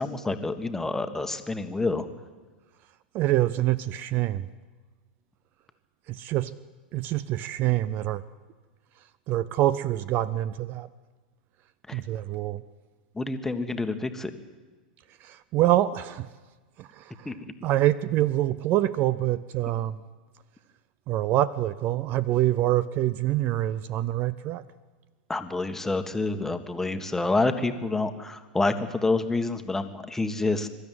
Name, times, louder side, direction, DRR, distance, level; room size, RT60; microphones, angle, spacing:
voice 1, 0.0-2.1 11.9-12.0 13.1-14.3 17.2-17.3 25.3-30.7, left 3 dB, 10° left, 1.5 m, -28 dB
voice 2, 3.1-4.5 6.1-6.5 6.9-8.2 9.3-10.9 11.9-12.6 15.2-16.3 16.8-17.3 17.6-20.0 21.1-24.6, right 14 dB, 40° right, 0.6 m, -25 dB
23.5 x 12.5 x 9.3 m
hypercardioid pair, 95°, 5 cm